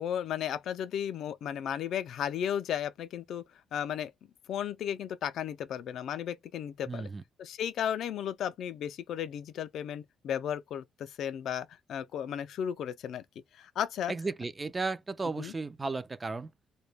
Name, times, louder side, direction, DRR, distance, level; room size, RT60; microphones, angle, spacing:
voice 1, 0.0-3.4 3.7-4.1 4.5-7.1 7.4-13.2 13.5-14.1 15.4-15.5, left 9 dB, 75° left, 0.3 m, -34 dB
voice 2, 6.9-7.2 14.1-16.5, right 3 dB, 25° right, 0.3 m, -34 dB
2.1 x 2.1 x 3.2 m
cardioid pair, 90°, 0 cm